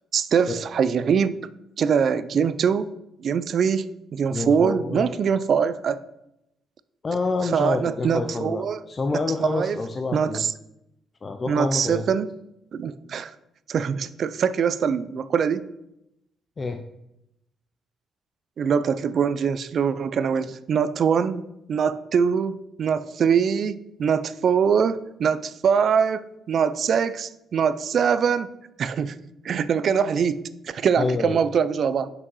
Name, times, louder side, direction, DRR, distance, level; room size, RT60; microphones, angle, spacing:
voice 1, 0.1-1.4 1.8-2.9 3.2-3.9 4.1-6.0 7.5-8.8 9.4-9.8 10.1-10.5 11.5-12.3 12.7-13.3 13.7-15.7 18.6-21.4 21.7-28.5 28.8-29.2 29.4-32.1, right 7 dB, 55° right, 15 dB, 0.4 m, -23 dB
voice 2, 4.3-5.1 7.0-10.5 11.2-12.0 16.6-16.8 31.0-31.4, left 3 dB, 35° left, 6 dB, 0.5 m, -27 dB
6.0 x 5.3 x 5.5 m, 0.86 s
cardioid pair, 90°, 0 cm